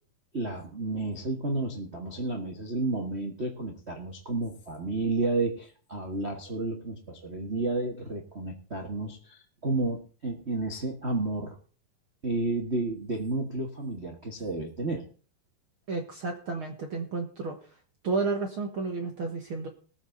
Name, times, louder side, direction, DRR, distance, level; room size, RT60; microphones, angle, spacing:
voice 1, 0.3-11.5 12.2-15.0, right 2 dB, 90° right, 1 dB, 0.5 m, -31 dB
voice 2, 15.9-17.6 18.0-19.7, right 4 dB, 55° right, 3 dB, 1.5 m, -31 dB
20.0 x 7.5 x 4.0 m, 0.39 s
omnidirectional pair, 4.2 m